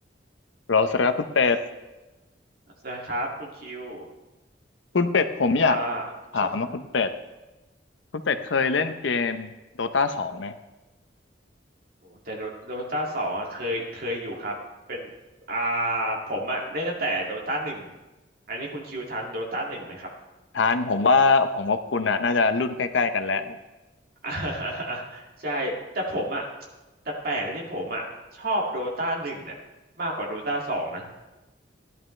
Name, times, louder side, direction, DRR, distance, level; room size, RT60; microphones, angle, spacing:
voice 1, 0.7-1.6 4.9-5.8 6.3-7.1 8.3-9.5 9.8-10.5 20.5-23.6, left 4 dB, 75° left, 9 dB, 0.7 m, -23 dB
voice 2, 2.8-4.1 5.6-6.0 6.3-6.5 12.0-14.5 14.9-15.1 15.5-17.9 18.5-20.1 24.2-26.4 27.2-28.1 28.3-29.5 30.0-31.0, right 1 dB, 50° right, -1 dB, 2.3 m, -30 dB
15.5 x 11.0 x 3.3 m, 1.1 s
head